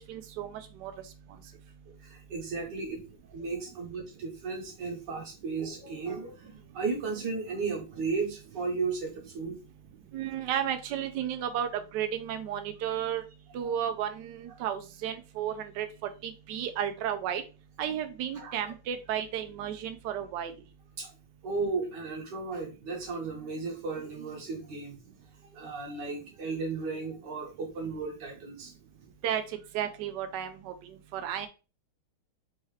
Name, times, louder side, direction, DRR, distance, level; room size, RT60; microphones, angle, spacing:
voice 1, 0.1-0.9 10.1-13.2 13.5-17.4 17.8-20.5 29.2-29.4 29.7-31.5, right 9 dB, 80° right, 8 dB, 0.9 m, -33 dB
voice 2, 1.9-3.0 3.3-9.6 13.6-13.7 18.4-18.6 21.0-21.1 21.4-25.0 25.5-28.7, right 4 dB, 55° right, 1 dB, 1.7 m, -35 dB
4.6 x 2.9 x 3.2 m, 0.31 s
omnidirectional pair, 2.4 m